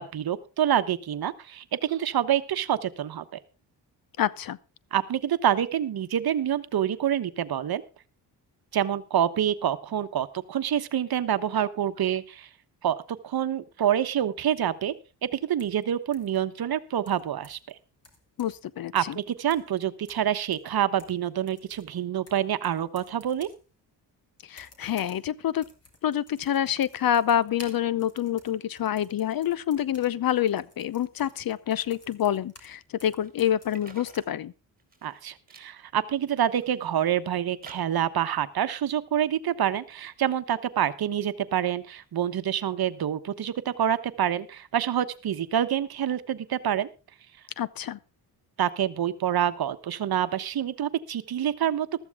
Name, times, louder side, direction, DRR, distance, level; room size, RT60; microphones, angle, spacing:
voice 1, 0.0-3.2 4.9-7.8 8.7-12.5 12.8-14.9 15.3-17.8 18.9-23.5 35.0-46.9 48.6-51.9, right 10 dB, 60° right, 1.1 m, -27 dB
voice 2, 4.2-4.6 18.4-18.9 24.5-25.6 26.0-34.5 47.6-48.0, left 10 dB, 55° left, 0.7 m, -27 dB
sound 1, 15.6-15.8 16.1-16.4 17.1-17.7 18.0-18.7 19.0-19.2 19.5-19.8 20.1-21.2 21.5-23.6 24.5-25.2 25.5-32.7 33.0-34.2, left 2 dB, 35° left, 3.5 m, -54 dB
sound 2, 33.2-34.3 34.8-35.2 35.5-35.7 36.3-37.1 37.6-38.1, right 4 dB, 20° right, 4.1 m, -51 dB
14.0 x 13.5 x 3.6 m
cardioid pair, 90°, 41 cm